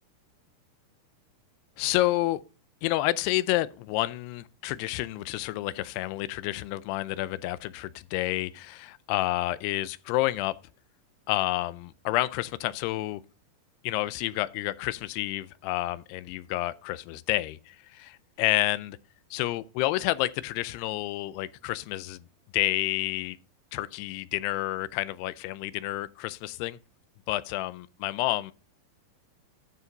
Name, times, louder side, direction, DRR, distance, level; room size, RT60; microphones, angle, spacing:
voice 1, 1.8-2.4 2.8-10.5 11.3-13.2 13.8-19.0 19.3-22.3 22.5-23.4 23.7-26.8 27.3-28.5, left 17 dB, 85° left, 2.6 m, -29 dB
12.0 x 5.8 x 4.0 m
omnidirectional pair, 4.7 m